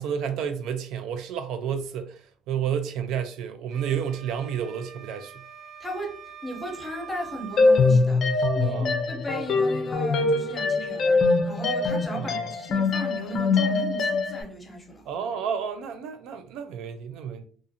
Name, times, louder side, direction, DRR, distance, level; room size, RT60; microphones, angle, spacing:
voice 1, 0.0-5.4 8.6-8.9 12.2-12.5 15.1-17.5, right 8 dB, 80° right, 0.3 m, -31 dB
sound 1, 3.7-7.9, right 6 dB, 60° right, 0.7 m, -44 dB
voice 2, 5.8-15.1, right 1 dB, 15° left, 0.8 m, -36 dB
sound 2, 7.6-14.4, left 3 dB, 55° left, 0.4 m, -23 dB
2.5 x 2.4 x 2.7 m
cardioid pair, 120°, 0 cm